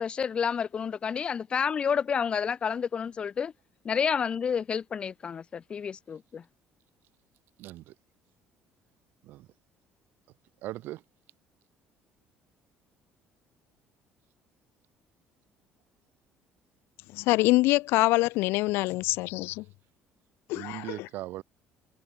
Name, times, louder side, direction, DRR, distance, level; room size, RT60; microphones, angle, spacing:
voice 1, 0.0-3.5 3.9-6.4, left 7 dB, 25° left, 3.4 m, -29 dB
voice 2, 7.6-7.9 9.2-9.5 10.6-11.0 20.5-21.4, right 16 dB, 60° right, 4.5 m, -39 dB
voice 3, 17.1-19.6 20.5-21.1, left 20 dB, 80° left, 1.0 m, -25 dB
cardioid pair, 175°, 4 cm